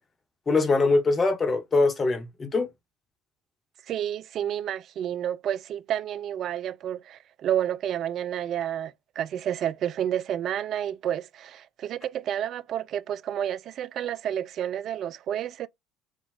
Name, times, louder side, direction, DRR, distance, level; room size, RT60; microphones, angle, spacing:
voice 1, 0.5-2.7, left 3 dB, 30° left, 1.2 m, -23 dB
voice 2, 3.9-15.7, right 10 dB, 50° right, 0.3 m, -30 dB
3.6 x 2.4 x 3.7 m
hypercardioid pair, 70°, 0 cm